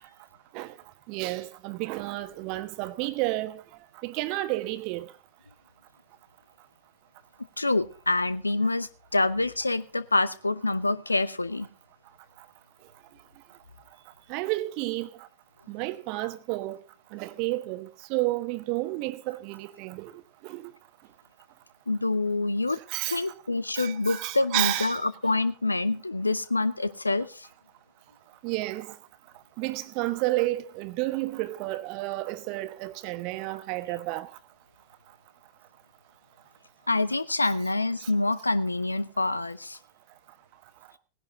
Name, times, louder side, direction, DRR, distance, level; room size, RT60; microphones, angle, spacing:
voice 1, 1.1-3.6 4.0-5.1 14.3-15.1 15.7-16.8 17.1-20.1 20.4-20.7 22.9-23.2 23.8-25.0 28.4-28.9 29.6-34.3 38.0-38.1, right 18 dB, 45° right, 1.2 m, -31 dB
voice 2, 7.6-11.7 21.9-22.8 23.1-27.5 36.9-39.8, left 2 dB, 80° left, 0.7 m, -26 dB
17.5 x 11.0 x 3.7 m
figure-of-eight pair, 90°, 0 cm